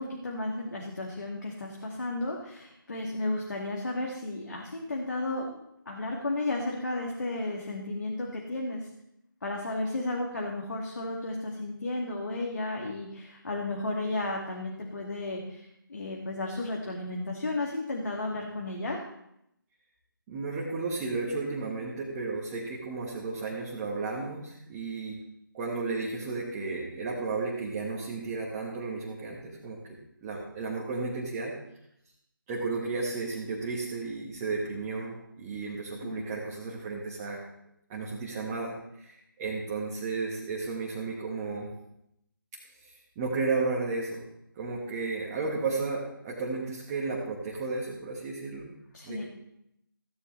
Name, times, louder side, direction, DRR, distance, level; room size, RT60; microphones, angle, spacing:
voice 1, 0.0-5.6 5.9-8.8 9.4-15.6 15.9-19.0 36.0-36.3 48.9-49.2, left 2 dB, 55° left, -1 dB, 2.2 m, -33 dB
voice 2, 20.3-25.2 25.5-31.5 32.5-37.4 37.9-41.7 42.7-44.2 44.5-48.8 49.0-49.2, right 3 dB, 15° right, -5 dB, 1.5 m, -33 dB
16.0 x 9.9 x 3.3 m, 0.80 s
figure-of-eight pair, 155°, 12 cm